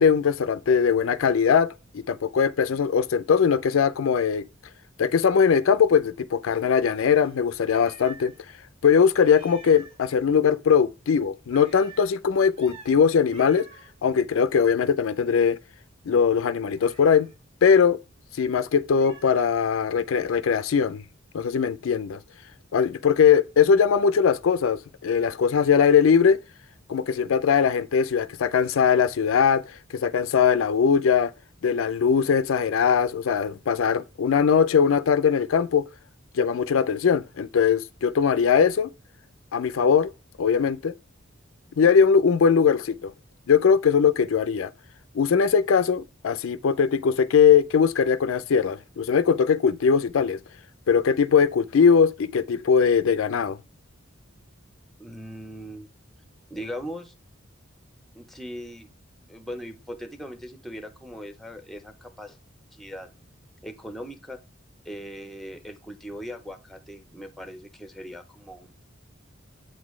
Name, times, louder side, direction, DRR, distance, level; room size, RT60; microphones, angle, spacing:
voice 1, 0.0-4.4 5.0-8.3 8.8-13.6 14.0-15.6 16.1-17.3 17.6-18.0 18.3-21.0 21.3-22.2 22.7-26.4 26.9-29.6 29.9-31.3 31.6-35.8 36.3-38.9 39.5-40.1 40.4-40.9 41.8-43.1 43.5-44.7 45.1-50.4 50.9-53.6, left 6 dB, 85° left, 0.4 m, -20 dB
Meow, 6.9-8.4 8.7-8.8 9.2-10.0 11.5-12.1 12.5-13.0 13.3-13.9 16.8-17.3 18.9-19.7, right 3 dB, 30° right, 1.4 m, -48 dB
voice 2, 55.0-55.9 56.5-57.1 58.1-58.9 59.3-62.4 62.7-63.1 63.6-64.4 64.8-68.7, equal, ahead, 0.6 m, -39 dB
7.8 x 4.0 x 3.1 m
head